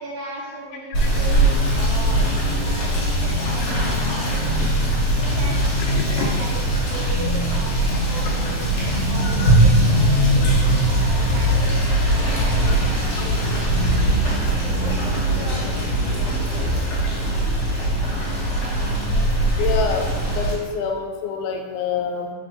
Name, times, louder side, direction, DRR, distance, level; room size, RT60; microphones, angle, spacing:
voice 1, 0.0-4.6 5.2-6.6 6.8-8.7 9.0-12.9 13.2-14.0 14.5-16.7, right 1 dB, 75° right, -3 dB, 1.6 m, -37 dB
Rain / Motor vehicle (road), 0.9-20.5, right 1 dB, 65° left, 1.8 m, -20 dB
voice 2, 5.8-6.3 9.4-9.5 10.4-10.5 19.6-22.3, left 6 dB, 85° left, 3 dB, 2.0 m, -27 dB
4.3 x 4.1 x 2.6 m, 1.4 s
omnidirectional pair, 3.6 m